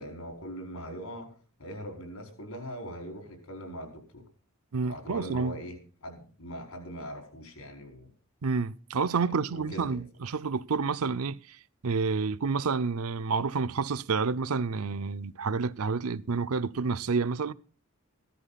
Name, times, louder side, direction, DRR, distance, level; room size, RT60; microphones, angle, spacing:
voice 1, 0.0-4.3 4.8-8.1 9.5-10.0, equal, 85° left, 4.7 m, -41 dB
voice 2, 4.7-5.5 8.4-11.4 11.8-17.5, right 4 dB, 85° right, 0.6 m, -29 dB
15.0 x 13.0 x 4.0 m
head